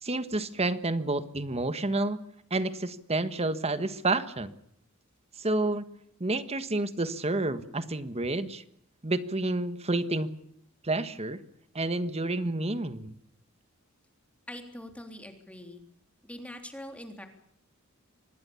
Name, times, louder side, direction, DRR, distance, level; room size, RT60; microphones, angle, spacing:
voice 1, 0.0-2.2 2.5-4.5 5.4-5.8 6.2-8.6 9.0-10.3 10.8-11.4 11.7-13.1, right 2 dB, 30° right, 12 dB, 1.5 m, -29 dB
voice 2, 14.5-15.8 16.2-17.3, left 1 dB, 5° left, 5 dB, 3.4 m, -43 dB
25.5 x 20.0 x 7.1 m, 0.72 s
head